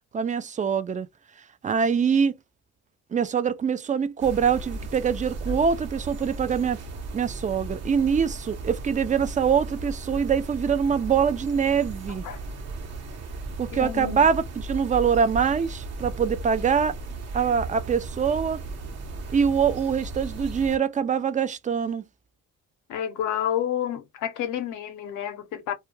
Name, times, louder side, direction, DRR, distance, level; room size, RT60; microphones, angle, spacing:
voice 1, 0.1-1.1 1.6-2.3 3.1-6.8 7.1-12.2 13.6-17.0 17.3-18.6 19.3-22.0, right 7 dB, 25° right, 0.4 m, -24 dB
sound 1, 4.2-20.8, right 2 dB, 55° right, 0.8 m, -36 dB
voice 2, 13.7-14.3 22.9-25.7, left 10 dB, 90° left, 0.7 m, -29 dB
2.2 x 2.2 x 3.1 m
cardioid pair, 90°, 30 cm